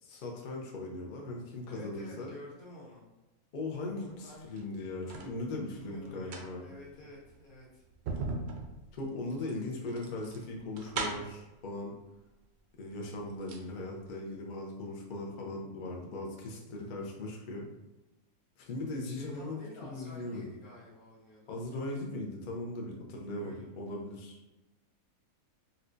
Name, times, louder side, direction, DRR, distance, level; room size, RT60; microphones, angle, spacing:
voice 1, 0.0-2.3 3.5-6.7 8.9-11.9 12.8-17.7 18.6-19.6 19.9-20.4 21.5-24.4, left 2 dB, 60° left, 0 dB, 0.5 m, -39 dB
voice 2, 1.7-3.0 3.9-4.5 5.6-7.8 19.0-21.5 23.4-23.7, left 1 dB, 80° left, -5 dB, 1.5 m, -50 dB
sound 1, 4.4-5.3 6.1-11.5 12.4-12.5 12.9-13.7 14.0-14.1, right 3 dB, 70° right, 0.6 m, -40 dB
4.2 x 2.3 x 2.5 m, 1.0 s
omnidirectional pair, 1.6 m